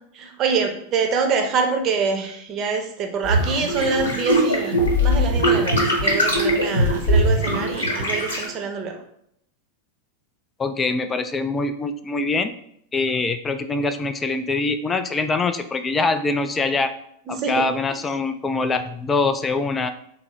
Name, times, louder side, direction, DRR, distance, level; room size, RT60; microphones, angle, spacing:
voice 1, 0.1-9.0 17.3-17.7, right 5 dB, 35° right, 4 dB, 0.6 m, -25 dB
sound 1, 3.2-8.4, equal, 70° left, 1.1 m, -20 dB
voice 2, 10.6-12.5 12.9-16.9 17.3-19.9, left 3 dB, 20° left, 10 dB, 0.3 m, -24 dB
3.7 x 2.0 x 4.2 m, 0.72 s
figure-of-eight pair, 90°, 0 cm